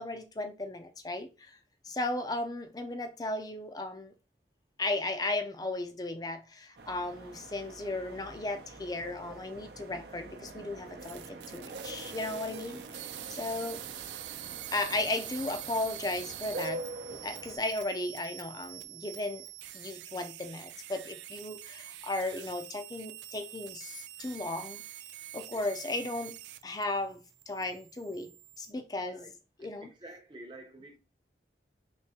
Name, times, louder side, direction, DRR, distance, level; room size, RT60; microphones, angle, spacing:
voice 1, 0.0-1.6 1.8-4.1 4.8-13.8 14.7-16.8 17.1-19.4 19.7-24.8 25.3-26.3 26.6-28.3 28.6-29.3 29.6-29.9, left 2 dB, 20° left, 0.5 m, -35 dB
sound 1, 6.8-17.6, right 2 dB, 65° right, 0.7 m, -45 dB
sound 2, 11.0-26.8 27.1-28.7, right 13 dB, 80° right, 0.3 m, -45 dB
voice 2, 29.8-31.0, right 1 dB, 25° right, 0.7 m, -48 dB
3.4 x 3.1 x 2.9 m
head